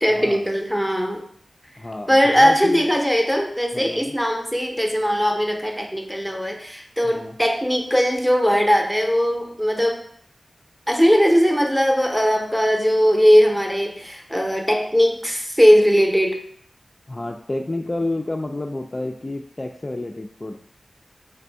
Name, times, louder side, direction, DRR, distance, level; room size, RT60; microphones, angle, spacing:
voice 1, 0.0-1.3 2.1-10.0 10.9-16.4, equal, 5° right, 3 dB, 0.6 m, -19 dB
voice 2, 1.8-3.0 3.7-4.1 7.0-7.4 17.1-20.6, left 2 dB, 35° left, 3 dB, 0.3 m, -29 dB
3.3 x 2.6 x 4.4 m, 0.63 s
wide cardioid pair, 60°, 0 cm